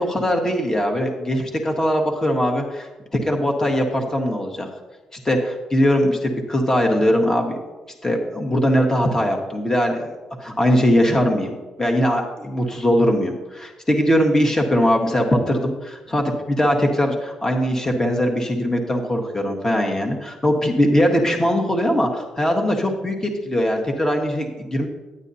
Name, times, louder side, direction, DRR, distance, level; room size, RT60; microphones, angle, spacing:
voice 1, 0.0-4.7 5.1-7.6 8.0-10.1 10.4-24.9, equal, 25° left, 1 dB, 1.5 m, -21 dB
9.9 x 8.9 x 2.8 m, 1.1 s
supercardioid pair, 60°, 2 cm